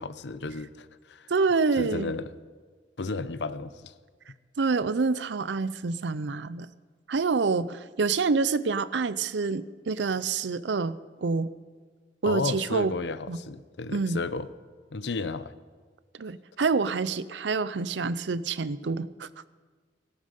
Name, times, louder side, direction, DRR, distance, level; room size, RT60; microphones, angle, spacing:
voice 1, 0.0-1.3 1.8-2.3 3.0-3.9 12.2-14.5 14.9-15.5, left 3 dB, 75° left, 14 dB, 0.7 m, -33 dB
voice 2, 1.3-2.1 4.6-6.7 7.1-11.5 12.2-12.9 13.3-13.4 13.9-14.2 16.2-19.3, right 4 dB, 90° right, 16 dB, 0.6 m, -27 dB
17.5 x 12.0 x 5.3 m, 1.5 s
head